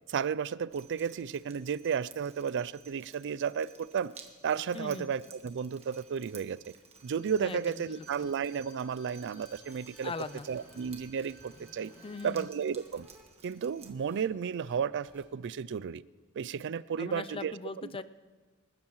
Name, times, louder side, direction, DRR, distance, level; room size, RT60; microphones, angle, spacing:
voice 1, 0.1-4.1 4.4-6.6 7.0-10.1 10.5-11.9 12.2-13.1 13.4-16.0 16.4-17.5 17.8-18.0, right 7 dB, 55° right, 18 dB, 0.4 m, -33 dB
Drip, 0.7-13.9, right 6 dB, 30° right, 1.5 m, -56 dB
voice 2, 4.7-5.1 7.4-7.6 7.9-8.3 10.0-10.5 12.0-12.5 17.0-18.0, left 4 dB, 25° left, 14 dB, 0.4 m, -40 dB
Bowed string instrument, 6.9-12.5 12.9-13.0, right 1 dB, 45° left, 3.5 m, -59 dB
sound 1, 9.6-11.0 11.3-13.2 13.5-14.2 14.7-14.8 15.0-15.2, equal, 10° right, 3.6 m, -58 dB
28.0 x 13.0 x 3.1 m, 1.4 s
head